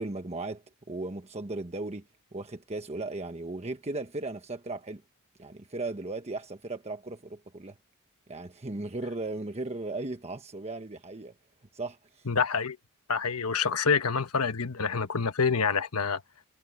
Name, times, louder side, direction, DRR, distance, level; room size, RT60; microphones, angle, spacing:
voice 1, 0.0-5.0 5.4-7.8 8.3-11.3 11.7-12.3, right 2 dB, 30° right, 1.2 m, -36 dB
voice 2, 12.3-12.8 13.1-16.2, left 5 dB, 80° left, 1.3 m, -27 dB
head